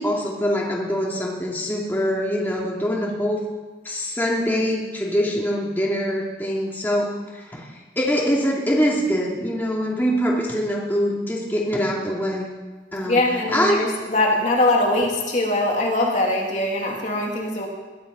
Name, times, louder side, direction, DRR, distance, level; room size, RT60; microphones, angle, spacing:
voice 1, 0.0-3.4 3.8-12.5 12.9-13.2 13.5-13.8, equal, 10° left, -3 dB, 2.6 m, -24 dB
voice 2, 13.1-17.7, left 1 dB, 40° left, -1 dB, 2.7 m, -22 dB
21.0 x 11.5 x 5.4 m, 1.3 s
head